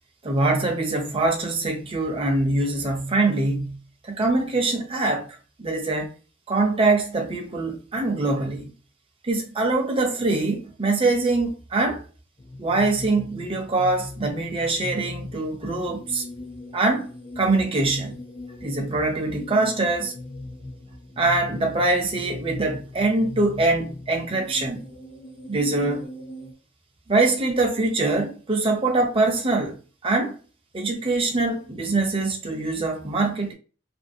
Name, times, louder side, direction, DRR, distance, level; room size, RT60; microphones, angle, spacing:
voice 1, 0.2-3.8 4.0-5.3 5.6-6.1 6.5-8.7 9.2-12.0 12.6-16.2 16.7-17.1 17.4-18.2 18.6-20.1 21.2-24.8 25.5-26.1 27.1-29.8 30.0-30.4 30.7-33.5, right 2 dB, 30° right, 0.6 m, -23 dB
sound 1, 12.4-26.5, left 2 dB, 25° left, 0.5 m, -39 dB
2.6 x 2.5 x 2.6 m
head